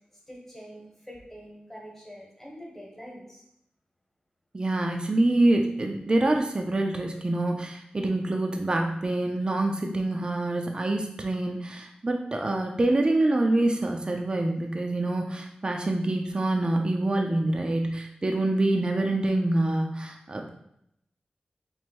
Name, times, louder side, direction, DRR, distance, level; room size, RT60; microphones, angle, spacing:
voice 1, 0.3-3.4, equal, 10° left, -3 dB, 1.2 m, -45 dB
voice 2, 4.5-20.5, right 2 dB, 35° right, 3 dB, 0.4 m, -26 dB
3.0 x 2.6 x 4.4 m, 0.76 s
wide cardioid pair, 85°, 3 cm